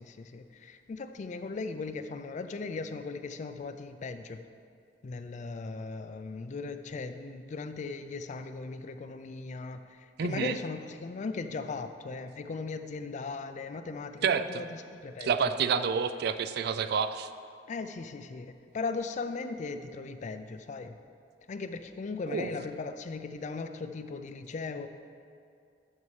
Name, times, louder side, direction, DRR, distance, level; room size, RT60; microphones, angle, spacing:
voice 1, 0.0-4.4 5.0-15.5 17.7-21.0 21.5-24.9, left 4 dB, 40° left, 9 dB, 0.4 m, -38 dB
voice 2, 10.2-10.6 14.2-14.6 15.2-17.3 22.3-22.5, right 6 dB, 60° right, 11 dB, 0.3 m, -28 dB
12.5 x 5.4 x 3.2 m, 2.4 s
head